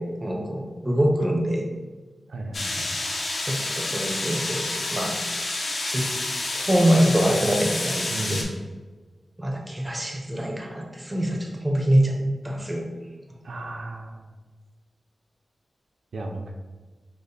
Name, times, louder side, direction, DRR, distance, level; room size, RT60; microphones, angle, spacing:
voice 1, 0.0-1.7 3.4-5.2 5.8-6.2 6.5-8.5 9.4-12.1 12.4-12.8, equal, 15° right, 1 dB, 0.5 m, -24 dB
voice 2, 2.3-2.9 8.1-8.5 13.4-14.2 16.1-16.5, right 2 dB, 75° right, 2 dB, 0.4 m, -34 dB
sound 1, 2.5-8.4, left 2 dB, 55° left, 0.6 m, -29 dB
5.0 x 2.0 x 2.7 m, 1.3 s
wide cardioid pair, 145°, 0 cm